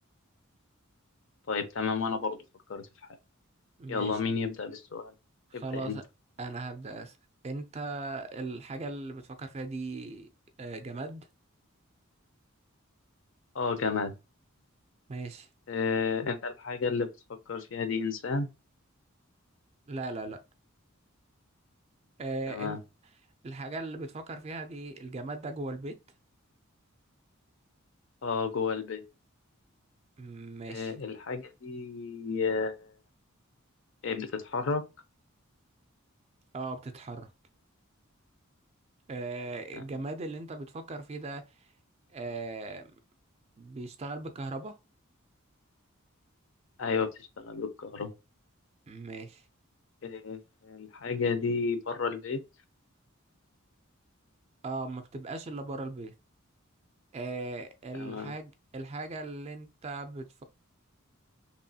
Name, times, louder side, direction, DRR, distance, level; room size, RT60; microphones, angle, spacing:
voice 1, 1.5-2.4 2.7-2.9 3.9-5.1 5.5-6.0 13.5-14.1 15.7-17.1 17.5-18.5 22.5-22.8 28.2-29.0 30.7-32.9 34.0-34.8 46.8-47.1 47.4-48.1 50.0-52.4 57.9-58.3, left 5 dB, 60° left, 0.5 m, -32 dB
voice 2, 3.8-4.2 5.5-6.0 6.4-7.1 7.4-10.3 10.6-11.3 15.1-15.5 19.9-20.4 22.2-22.8 23.4-26.0 30.2-30.9 36.5-37.3 39.1-41.5 42.1-42.9 43.6-44.7 48.9-49.4 54.6-56.1 57.1-60.4, right 2 dB, 30° right, 0.3 m, -38 dB
2.9 x 2.3 x 2.7 m
head